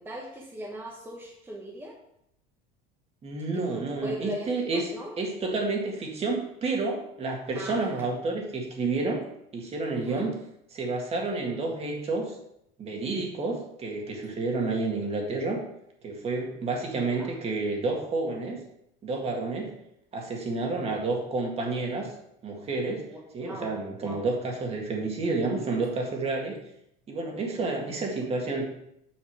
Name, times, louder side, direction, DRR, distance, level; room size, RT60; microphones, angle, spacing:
voice 1, 0.0-1.9 3.5-5.1 7.5-7.9 9.9-10.2 17.0-17.3 23.0-24.3 27.5-27.7, equal, 10° right, -3 dB, 1.1 m, -39 dB
voice 2, 3.2-4.9 5.2-9.2 9.5-10.4 10.7-12.3 12.8-15.6 16.0-18.6 19.0-19.7 20.1-22.1 22.4-23.0 23.3-26.6 27.1-28.7, right 3 dB, 30° right, 1 dB, 2.0 m, -30 dB
7.8 x 5.4 x 4.8 m, 0.77 s
cardioid pair, 135°, 20 cm